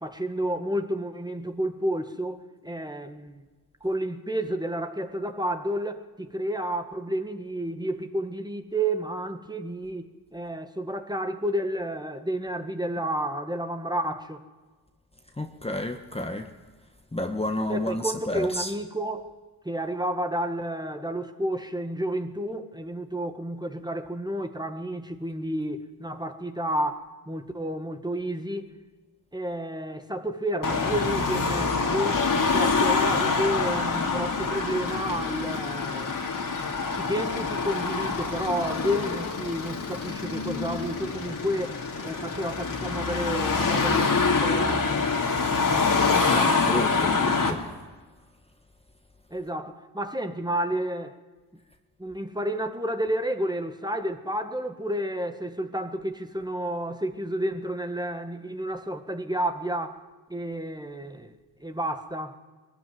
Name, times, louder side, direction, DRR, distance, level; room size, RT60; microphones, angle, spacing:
voice 1, 0.0-3.4 3.8-14.4 17.7-19.3 19.7-28.7 29.3-32.2 32.5-36.4 36.9-45.0 49.3-51.2 52.0-60.0 60.3-61.3 61.6-62.4, right 1 dB, 10° right, 1.8 m, -31 dB
voice 2, 15.4-16.5 17.1-18.7 46.2-47.7, left 1 dB, 15° left, 1.5 m, -30 dB
Car passing by / Traffic noise roadway noise / Engine, 30.6-47.5, left 4 dB, 45° left, 2.9 m, -26 dB
21.0 x 13.5 x 9.5 m
supercardioid pair, 55°, 45 cm